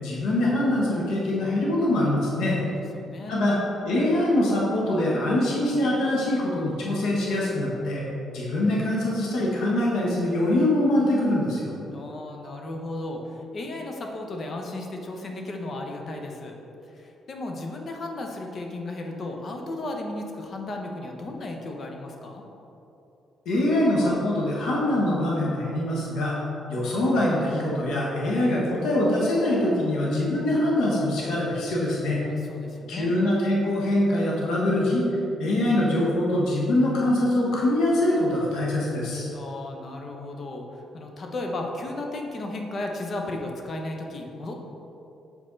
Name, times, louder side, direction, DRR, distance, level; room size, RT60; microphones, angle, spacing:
voice 1, 0.0-2.6 3.3-3.6 3.8-8.0 8.3-11.7 23.4-26.4 26.7-32.2 32.9-35.0 35.4-39.3, left 1 dB, 80° left, -4 dB, 1.3 m, -23 dB
voice 2, 2.6-3.5 11.9-16.6 16.9-22.4 32.3-33.1 39.3-44.5, left 2 dB, 45° left, 2 dB, 0.9 m, -35 dB
7.7 x 4.6 x 3.9 m, 3.0 s
cardioid pair, 90°, 0 cm